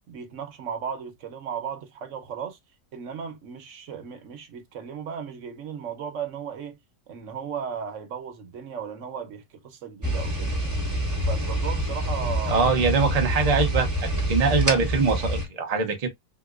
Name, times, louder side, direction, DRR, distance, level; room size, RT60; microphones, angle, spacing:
voice 1, 0.1-2.6 2.9-6.8 7.1-10.5 11.2-12.7, right 7 dB, 55° right, 1.0 m, -35 dB
sound 1, 10.0-15.4, equal, 15° right, 0.7 m, -26 dB
voice 2, 12.5-16.1, right 4 dB, 85° right, 0.3 m, -23 dB
3.8 x 2.8 x 2.3 m
omnidirectional pair, 1.9 m